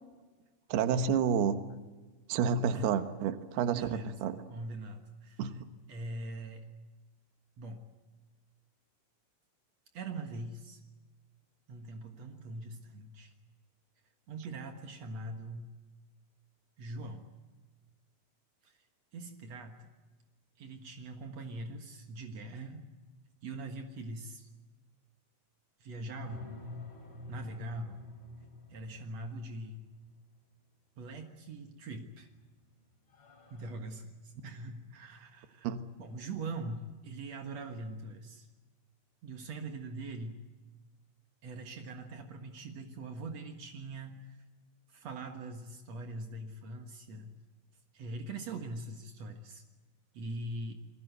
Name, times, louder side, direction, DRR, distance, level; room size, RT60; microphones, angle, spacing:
voice 1, 0.7-1.6 2.3-4.4 5.4-5.5 35.6-35.8, right 7 dB, 65° right, 9 dB, 2.9 m, -29 dB
voice 2, 3.7-4.2 4.5-5.6 5.9-6.6 7.6-7.9 9.9-10.8 11.7-13.3 14.3-15.7 16.8-17.3 18.6-18.8 19.1-19.9 20.6-22.9 23.4-24.5 25.8-26.6 27.3-28.1 28.7-29.8 31.0-32.3 33.5-35.7 36.0-38.5 39.2-40.4 41.4-44.4 44.9-47.3 47.9-49.6 50.1-50.7, right 2 dB, 85° right, 4 dB, 1.4 m, -42 dB
sound 1, 26.2-30.1 31.9-32.4 32.7-32.8 33.1-33.7, left 2 dB, 25° left, 3.6 m, -48 dB
29.0 x 21.0 x 8.0 m, 1.3 s
omnidirectional pair, 5.6 m